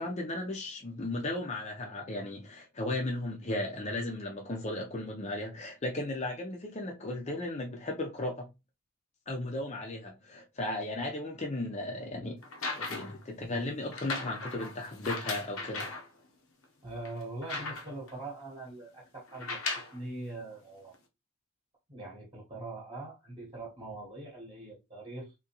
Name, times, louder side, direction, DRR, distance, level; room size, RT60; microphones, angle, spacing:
voice 1, 0.0-8.5 9.3-12.4 12.7-15.9, left 2 dB, 30° left, 0.6 m, -35 dB
sound 1, 12.4-13.2 13.9-16.1 16.6-16.7 17.0-18.1 19.3-20.0 20.9-21.0, left 3 dB, 70° left, 0.8 m, -37 dB
voice 2, 16.8-20.9 21.9-25.3, right 2 dB, 25° right, 1.1 m, -42 dB
3.7 x 2.8 x 2.9 m
head